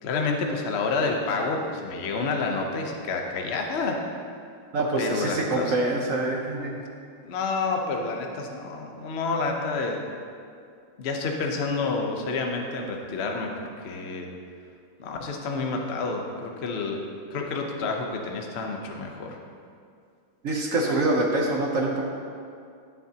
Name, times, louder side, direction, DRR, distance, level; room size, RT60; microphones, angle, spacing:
voice 1, 0.0-4.0 5.0-6.0 7.2-10.0 11.0-14.3 15.0-17.0 17.3-19.4, left 3 dB, 55° left, 2 dB, 0.7 m, -29 dB
voice 2, 4.7-6.8 20.4-22.0, right 2 dB, 55° right, 0 dB, 0.9 m, -25 dB
13.0 x 7.0 x 2.8 m, 2.3 s
omnidirectional pair, 2.1 m